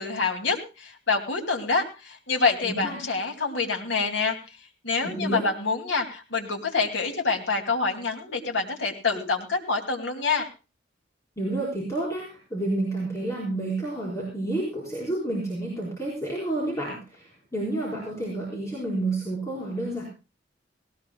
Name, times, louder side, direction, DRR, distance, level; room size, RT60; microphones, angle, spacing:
voice 1, 0.0-4.4 4.8-10.5, left 4 dB, 85° left, 4 dB, 2.6 m, -26 dB
voice 2, 2.6-3.0 5.0-5.5 11.4-20.0, right 2 dB, 15° left, -6 dB, 4.8 m, -30 dB
18.5 x 18.5 x 2.3 m, 0.31 s
head